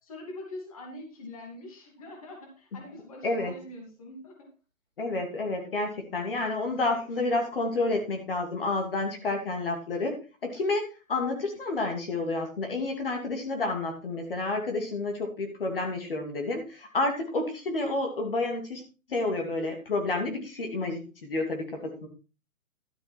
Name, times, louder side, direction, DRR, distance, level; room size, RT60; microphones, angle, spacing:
voice 1, 0.0-4.5, left 1 dB, 25° left, 1 dB, 2.6 m, -44 dB
voice 2, 3.2-3.6 5.0-18.8 19.1-22.1, left 2 dB, 40° left, 3 dB, 2.6 m, -30 dB
12.5 x 7.1 x 4.4 m, 0.31 s
hypercardioid pair, 175°, 41 cm